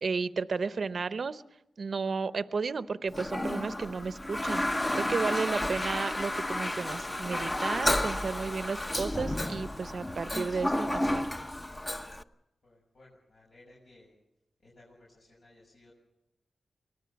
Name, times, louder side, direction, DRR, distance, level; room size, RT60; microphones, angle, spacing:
voice 1, 0.0-1.4 1.8-4.6 4.9-11.3, right 4 dB, 65° right, 13 dB, 0.7 m, -33 dB
Toilet flush, 3.1-12.2, left 1 dB, 20° left, 0.9 m, -31 dB
voice 2, 12.6-14.1 14.6-15.9, left 2 dB, 70° left, -4 dB, 6.9 m, -58 dB
24.0 x 19.0 x 7.0 m, 0.87 s
cardioid pair, 60°, 0 cm